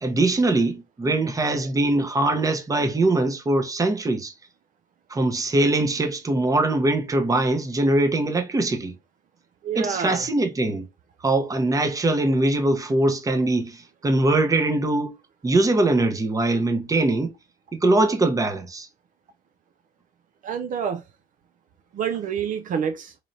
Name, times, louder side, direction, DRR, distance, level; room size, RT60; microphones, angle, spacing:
voice 1, 0.0-4.3 5.1-8.9 9.8-10.8 11.2-15.1 15.4-17.3 17.7-18.9, right 2 dB, 20° right, 0.9 m, -22 dB
voice 2, 9.6-10.3 20.4-21.0 21.9-23.2, right 7 dB, 50° right, 0.5 m, -27 dB
3.9 x 3.2 x 2.6 m
cardioid pair, 110°, 17 cm